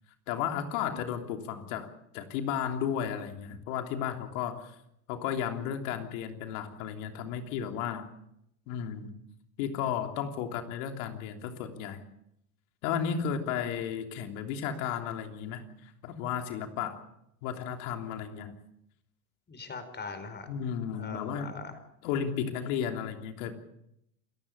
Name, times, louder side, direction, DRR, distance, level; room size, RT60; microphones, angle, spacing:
voice 1, 0.3-1.9 2.1-4.7 5.1-8.1 8.7-9.1 9.6-12.0 12.8-17.0 17.4-18.5 20.5-21.6 22.0-23.5, left 8 dB, 70° left, 5 dB, 3.3 m, -33 dB
voice 2, 19.5-20.5 20.9-21.7, left 4 dB, 25° left, 10 dB, 4.9 m, -41 dB
28.0 x 15.5 x 6.9 m, 0.76 s
hypercardioid pair, 100°, 43 cm